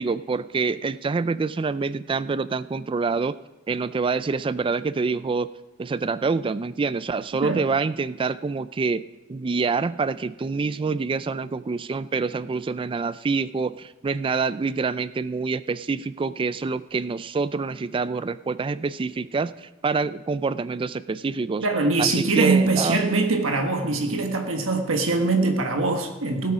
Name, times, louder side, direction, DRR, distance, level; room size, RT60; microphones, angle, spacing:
voice 1, 0.0-3.4 3.7-5.5 5.8-9.0 9.3-21.6 22.0-23.0, right 4 dB, 25° right, 16 dB, 0.3 m, -26 dB
voice 2, 21.6-26.5, right 3 dB, 80° right, 4 dB, 1.4 m, -22 dB
17.5 x 8.3 x 4.9 m, 1.1 s
head